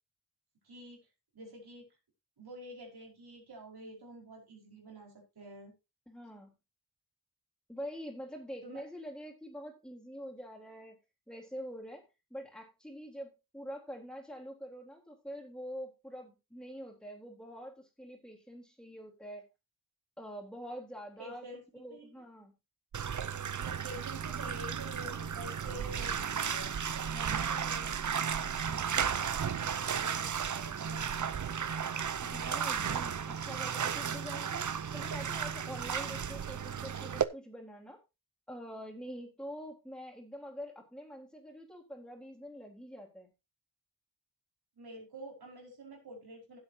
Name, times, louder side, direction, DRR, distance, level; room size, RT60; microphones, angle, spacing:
voice 1, 0.6-1.1 1.3-2.0 2.4-5.7 8.6-8.8 21.2-21.6 21.9-22.2 23.6-26.7 27.1-29.0 29.6-31.5 44.8-46.6, right 1 dB, 80° right, 0 dB, 5.1 m, -48 dB
voice 2, 6.1-6.5 7.7-11.0 11.3-12.0 12.3-19.5 20.2-21.5 21.7-22.5 32.2-38.0 38.5-43.3, equal, ahead, 0 dB, 3.6 m, -45 dB
Bathtub (filling or washing), 22.9-37.2, right 7 dB, 50° right, 0.7 m, -34 dB
16.0 x 8.0 x 2.8 m, 0.25 s
wide cardioid pair, 80°, 37 cm